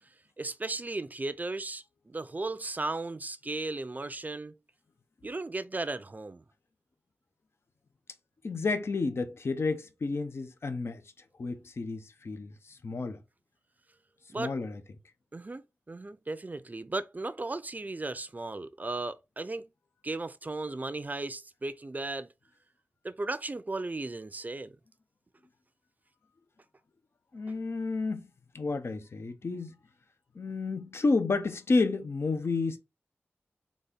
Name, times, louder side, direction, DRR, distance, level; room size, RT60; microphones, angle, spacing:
voice 1, 0.4-4.5 5.2-6.4 14.3-14.5 15.3-19.7 20.0-22.3 23.0-24.8, right 2 dB, 35° right, 0.5 m, -36 dB
voice 2, 8.4-11.0 11.4-13.2 14.4-14.8 27.3-28.3 28.5-29.7 30.3-32.8, left 3 dB, 65° left, 0.7 m, -31 dB
4.1 x 3.5 x 3.5 m
cardioid pair, 45°, 5 cm